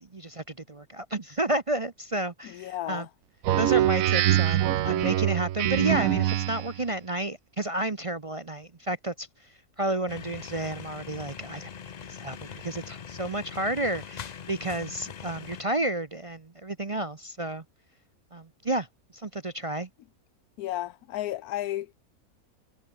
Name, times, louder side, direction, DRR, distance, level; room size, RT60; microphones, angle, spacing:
voice 1, 0.0-3.1 3.6-11.7 12.1-17.6 18.3-18.9 19.1-19.9, right 1 dB, 30° right, 0.7 m, -31 dB
voice 2, 2.4-3.1 20.6-21.9, left 14 dB, 80° left, 1.1 m, -33 dB
Speech synthesizer, 3.4-6.8, right 12 dB, 70° right, 1.0 m, -24 dB
sound 1, 10.1-15.6, left 7 dB, 55° left, 0.4 m, -42 dB
omnidirectional pair, 1.6 m